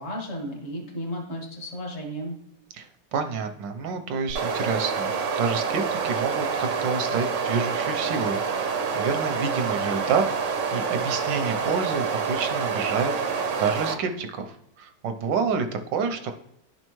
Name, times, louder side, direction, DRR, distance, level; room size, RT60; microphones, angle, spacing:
voice 1, 0.0-2.3, equal, 40° left, -1 dB, 1.9 m, -34 dB
voice 2, 2.7-5.1 5.4-16.3, right 5 dB, 85° right, 6 dB, 1.4 m, -29 dB
sound 1, 4.3-14.0, right 5 dB, 60° right, 0.8 m, -27 dB
11.0 x 5.4 x 3.1 m, 0.79 s
omnidirectional pair, 2.0 m